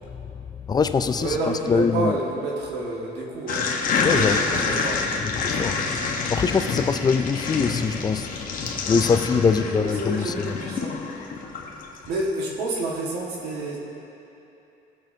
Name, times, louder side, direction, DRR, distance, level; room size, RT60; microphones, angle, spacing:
voice 1, 0.7-1.4 1.7-2.2 4.0-4.6 5.2-5.8 6.2-8.5 8.8-10.6, left 5 dB, 25° left, 10 dB, 0.4 m, -23 dB
voice 2, 1.2-3.7 4.0-5.0 9.4-11.0 12.1-13.8, right 2 dB, 85° right, -3 dB, 1.8 m, -29 dB
sound 1, 3.5-12.1, left 4 dB, 55° left, 1.1 m, -27 dB
16.5 x 6.0 x 2.8 m, 2.9 s
cardioid pair, 110°, 17 cm